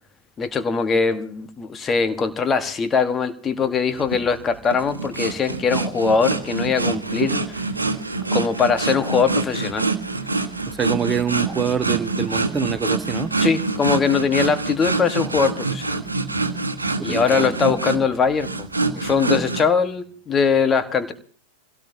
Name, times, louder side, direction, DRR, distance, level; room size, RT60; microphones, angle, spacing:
voice 1, 0.4-7.6 8.3-9.9 13.4-16.0 17.0-18.7 18.9-21.1, left 5 dB, 20° left, 1.3 m, -21 dB
sound 1, 4.0-19.6, right 3 dB, 80° right, 1.2 m, -25 dB
sound 2, 6.3-14.6, left 1 dB, 85° left, 3.0 m, -47 dB
voice 2, 10.7-13.3 17.0-17.8, right 7 dB, 15° right, 0.7 m, -26 dB
25.5 x 17.0 x 2.8 m
figure-of-eight pair, 90°, 0 cm